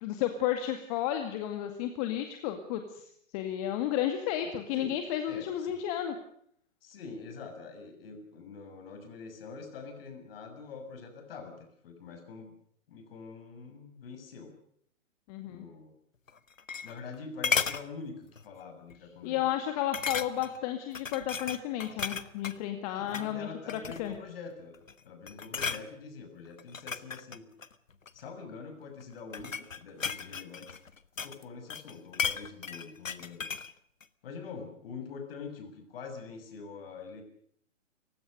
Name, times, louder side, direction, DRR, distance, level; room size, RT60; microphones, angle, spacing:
voice 1, 0.0-6.1 15.3-15.6 19.2-24.1, left 11 dB, 30° left, 7 dB, 2.1 m, -32 dB
voice 2, 5.3-5.8 6.8-12.6 12.9-14.5 15.4-15.9 16.8-19.5 22.9-27.5 28.1-30.7 31.2-33.5 34.2-37.2, left 4 dB, 50° left, 7 dB, 6.8 m, -45 dB
sound 1, 16.3-17.1 17.4-17.8 18.4-18.6 18.9-19.0 19.9-20.6 20.9-22.6 23.0-23.3 23.7-24.2 24.7-25.0 25.3-25.8 26.6-28.2 29.0-31.4 31.7-33.7 34.0-34.1, left 6 dB, 85° left, 1.5 m, -34 dB
29.0 x 16.5 x 6.7 m, 0.66 s
figure-of-eight pair, 135°, 38 cm